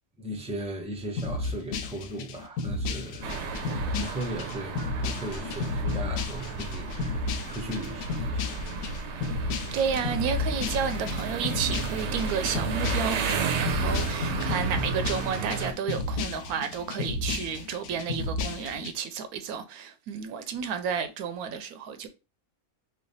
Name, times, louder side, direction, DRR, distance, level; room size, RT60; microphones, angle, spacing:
voice 1, 0.2-3.3 3.9-8.7, right 1 dB, 10° right, 0.4 m, -37 dB
sound 1, 1.2-18.9, left 3 dB, 80° left, 1.1 m, -33 dB
sound 2, 3.2-15.7, right 5 dB, 60° right, 0.8 m, -33 dB
voice 2, 9.7-22.1, right 7 dB, 90° right, 1.1 m, -31 dB
3.3 x 2.3 x 3.8 m
omnidirectional pair, 1.5 m